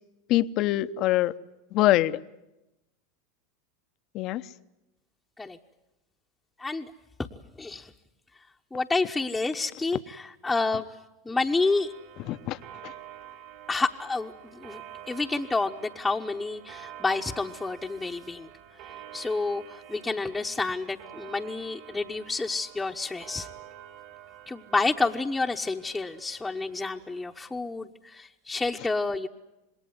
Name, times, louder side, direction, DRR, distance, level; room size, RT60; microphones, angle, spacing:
voice 1, 0.3-1.3 1.7-2.2 4.1-4.4 12.3-12.6 12.8-12.9, left 15 dB, 50° left, 13 dB, 0.9 m, -24 dB
voice 2, 6.6-6.9 7.3-7.9 8.7-10.8 11.2-11.9 13.7-14.8 15.1-18.5 19.1-23.5 24.5-29.3, left 3 dB, 10° left, -1 dB, 1.1 m, -29 dB
Clock, 11.5-27.6, right 10 dB, 60° right, 5.3 m, -48 dB
27.0 x 20.5 x 9.6 m, 0.95 s
hypercardioid pair, 100°, 0 cm